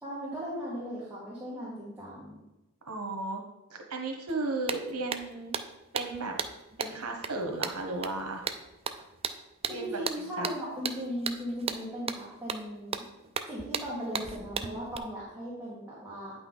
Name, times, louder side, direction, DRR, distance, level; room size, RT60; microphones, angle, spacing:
voice 1, 0.0-2.4 9.7-13.1 13.5-16.3, equal, 10° right, -8 dB, 2.0 m, -37 dB
voice 2, 2.9-3.4 3.7-5.5 5.9-6.3 6.8-8.4 9.7-10.0 10.4-10.5, right 2 dB, 90° right, 2 dB, 1.2 m, -34 dB
sound 1, 4.3-4.4 4.7-15.0, right 6 dB, 25° right, 0.4 m, -36 dB
8.9 x 5.7 x 4.0 m, 0.99 s
head